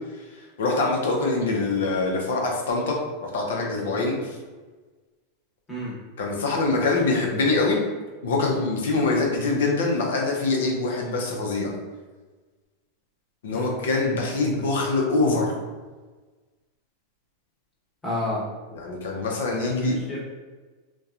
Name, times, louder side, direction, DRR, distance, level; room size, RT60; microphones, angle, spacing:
voice 1, 0.6-4.4 6.2-7.8 8.2-11.7 13.4-15.5 18.7-20.0, left 3 dB, 85° left, 0 dB, 0.6 m, -24 dB
voice 2, 18.0-18.4 19.6-20.2, left 1 dB, 10° left, -7 dB, 1.0 m, -30 dB
2.8 x 2.2 x 2.4 m, 1.3 s
supercardioid pair, 130°, 0 cm